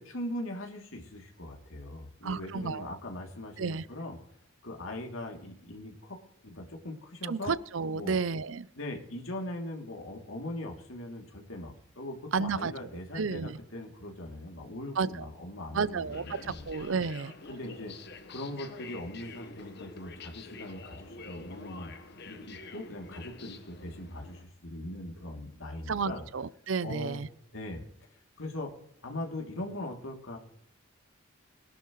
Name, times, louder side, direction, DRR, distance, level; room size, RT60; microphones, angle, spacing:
voice 1, 0.0-4.2 4.6-7.5 7.9-8.2 8.7-16.7 17.5-18.0 18.3-21.9 22.3-26.2 26.8-27.2 27.5-27.8 28.4-28.7 29.0-30.4, left 1 dB, 80° left, 2 dB, 2.9 m, -40 dB
voice 2, 2.2-3.0 3.6-3.8 7.2-8.7 12.3-12.7 13.1-13.6 15.0-15.1 15.7-16.4 16.7-17.3 25.9-27.3, right 5 dB, 70° right, 18 dB, 0.6 m, -31 dB
sound 1, 15.8-24.4, left 3 dB, 55° left, 1.3 m, -47 dB
20.5 x 11.5 x 3.2 m, 0.70 s
head